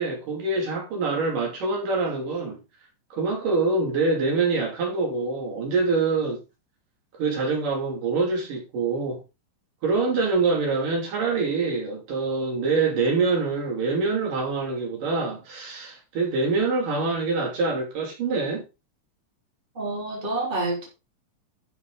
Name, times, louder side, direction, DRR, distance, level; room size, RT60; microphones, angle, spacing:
voice 1, 0.0-2.6 3.1-6.4 7.2-9.2 9.8-18.6, right 3 dB, 70° right, 4.3 m, -25 dB
voice 2, 19.7-20.9, right 2 dB, 15° right, 3.6 m, -28 dB
11.0 x 7.3 x 3.9 m
omnidirectional pair, 4.0 m